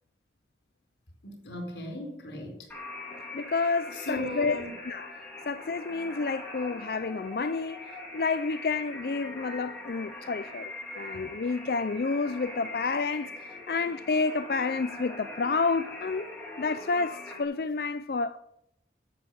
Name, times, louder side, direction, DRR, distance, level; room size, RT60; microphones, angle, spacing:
voice 1, 1.2-2.7 3.9-4.7, left 1 dB, 80° left, 4.3 m, -37 dB
sound 1, 2.7-17.4, left 1 dB, 10° left, 2.8 m, -42 dB
voice 2, 3.3-5.2 5.5-16.3 16.6-18.4, left 4 dB, 55° left, 0.4 m, -30 dB
10.5 x 8.4 x 9.2 m
head